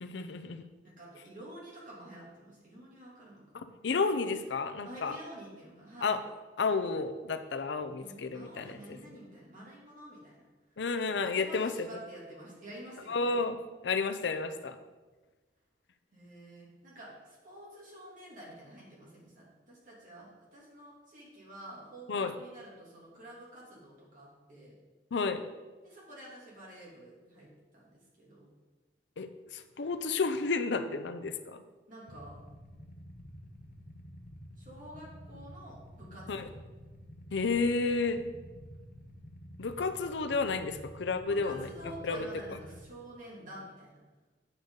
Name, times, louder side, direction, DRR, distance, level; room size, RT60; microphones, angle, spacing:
voice 1, 0.0-0.6 3.8-5.2 6.0-6.2 6.6-9.0 10.8-11.9 13.1-14.8 22.1-22.3 25.1-25.4 29.2-31.6 36.3-36.5 37.3-38.2 39.6-41.7 42.0-42.3, left 4 dB, 75° left, 9 dB, 0.6 m, -31 dB
voice 2, 0.8-3.4 4.8-6.2 7.9-10.5 11.3-13.4 16.1-24.7 25.8-27.5 27.7-28.5 31.9-32.4 34.6-36.5 41.3-44.0, right 1 dB, 45° right, -5 dB, 2.8 m, -49 dB
Motorcycle / Idling, 32.1-42.8, equal, 50° left, 1.0 m, -50 dB
8.7 x 6.6 x 3.9 m, 1.3 s
head